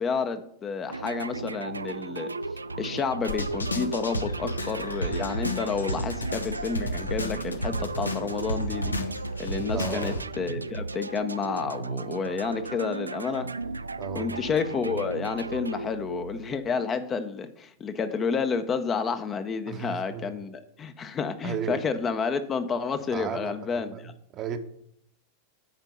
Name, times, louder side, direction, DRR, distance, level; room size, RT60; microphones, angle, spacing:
voice 1, 0.0-2.3 2.8-8.9 9.4-13.5 14.1-23.9, left 5 dB, 25° left, 10 dB, 0.7 m, -30 dB
sound 1, 0.9-16.8, right 3 dB, 80° right, 0.3 m, -35 dB
sound 2, 3.3-10.2, left 1 dB, 80° left, 0.8 m, -32 dB
voice 2, 9.7-10.3 14.0-14.4 19.7-20.4 21.4-21.8 23.1-24.6, right 8 dB, 35° right, 9 dB, 0.9 m, -35 dB
9.1 x 4.5 x 6.5 m, 0.69 s
figure-of-eight pair, 90°, 0 cm